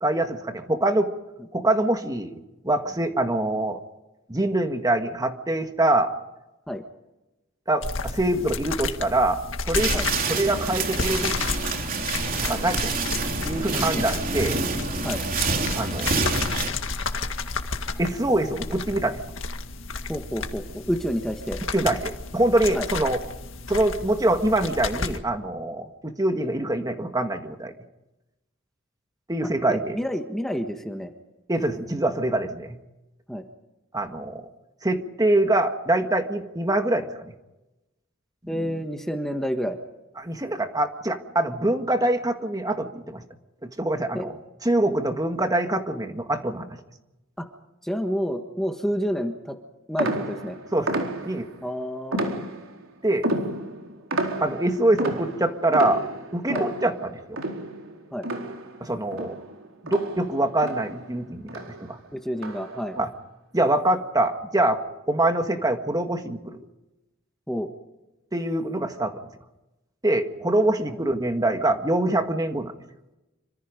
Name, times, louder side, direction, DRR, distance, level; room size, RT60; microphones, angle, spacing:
voice 1, 0.0-1.1 1.5-2.4 2.6-3.8 4.3-6.1 7.7-10.0 10.3-11.4 12.5-12.9 13.4-14.6 15.7-16.1 18.0-19.2 21.7-23.2 23.7-27.7 29.3-30.0 31.5-32.8 33.9-34.4 34.8-37.3 38.5-38.8 40.2-43.2 43.8-44.3 44.6-46.7 50.7-51.0 51.3-51.5 53.0-53.3 54.4-56.1 56.3-57.4 58.8-59.4 59.8-62.0 63.0-63.1 63.5-64.8 65.1-66.6 68.3-69.2 70.0-72.7, right 1 dB, 20° right, 6 dB, 1.7 m, -24 dB
sound 1, 7.8-25.2, left 4 dB, 70° left, 2.0 m, -32 dB
sound 2, 9.7-16.7, right 4 dB, 45° right, 3.4 m, -27 dB
voice 2, 13.7-14.0 15.0-15.2 20.1-21.6 22.7-22.9 29.7-31.1 33.3-33.4 38.5-39.8 44.1-44.3 47.4-47.5 47.8-49.5 49.9-50.6 51.6-52.4 56.5-56.6 58.1-58.3 62.1-63.0 67.5-67.7, equal, ahead, 4 dB, 1.5 m, -29 dB
sound 3, 50.0-51.6 52.1-52.8 53.2-58.8 59.1-61.2 61.5-61.9 62.4-62.8, right 1 dB, 80° right, 4.3 m, -31 dB
27.0 x 25.5 x 5.2 m, 0.99 s
head